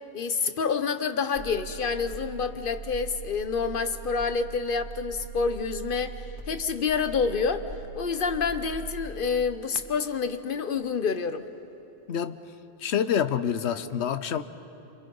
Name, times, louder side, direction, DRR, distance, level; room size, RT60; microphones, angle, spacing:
voice 1, 0.1-6.1 6.5-7.7 8.0-11.4, left 5 dB, 50° left, 1.1 m, -28 dB
sound 1, 1.3-9.1, right 5 dB, 45° right, 2.9 m, -41 dB
voice 2, 12.1-12.4 12.8-14.4, left 8 dB, 75° left, 1.1 m, -27 dB
28.5 x 27.0 x 5.5 m
omnidirectional pair, 1.2 m